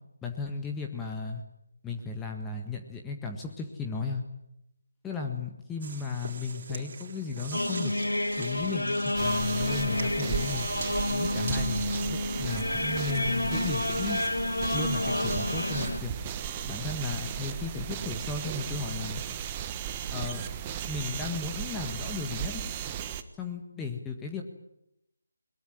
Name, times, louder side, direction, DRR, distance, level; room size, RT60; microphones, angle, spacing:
voice 1, 0.2-1.4 1.8-4.2 5.0-7.9 8.4-10.7 11.1-14.2 14.7-16.1 16.7-19.2 20.1-20.5 20.8-22.6 23.4-24.4, left 4 dB, 10° left, 2 dB, 1.6 m, -35 dB
sound 1, 5.8-12.1, right 4 dB, 40° right, 3.9 m, -43 dB
sound 2, 7.5-16.0, left 1 dB, 75° left, 1.2 m, -30 dB
sound 3, 9.2-23.2, right 9 dB, 20° right, 1.3 m, -36 dB
21.5 x 21.5 x 10.0 m, 0.82 s
figure-of-eight pair, 155°, 0 cm